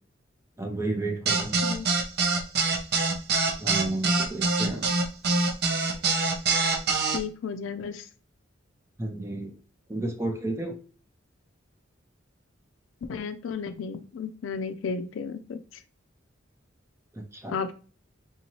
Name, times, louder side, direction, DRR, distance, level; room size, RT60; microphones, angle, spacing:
voice 1, 0.6-1.6 3.6-4.9 9.0-9.5 9.9-10.7 17.1-17.6, right 2 dB, 15° right, 3 dB, 0.6 m, -32 dB
sound 1, 1.3-7.2, right 3 dB, 55° right, 0.6 m, -24 dB
voice 2, 7.1-8.1 13.0-15.6 17.5-17.8, left 5 dB, 80° left, 9 dB, 0.4 m, -33 dB
3.7 x 2.7 x 2.9 m, 0.38 s
head